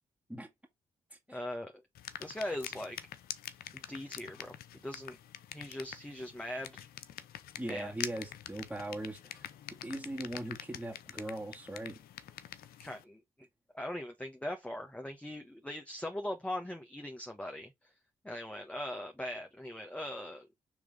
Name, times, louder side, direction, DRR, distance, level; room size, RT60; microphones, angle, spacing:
voice 1, 1.3-1.7 2.2-3.0 3.7-4.5 4.8-5.2 5.5-6.9 7.7-7.9 12.8-13.2 13.7-17.7 18.2-20.5, left 1 dB, 10° left, 1.3 m, -40 dB
sound 1, 1.9-13.0, left 11 dB, 75° left, 0.7 m, -46 dB
voice 2, 7.6-9.5 9.8-12.0, right 1 dB, 5° right, 2.0 m, -40 dB
6.0 x 3.4 x 5.0 m
hypercardioid pair, 45°, 16 cm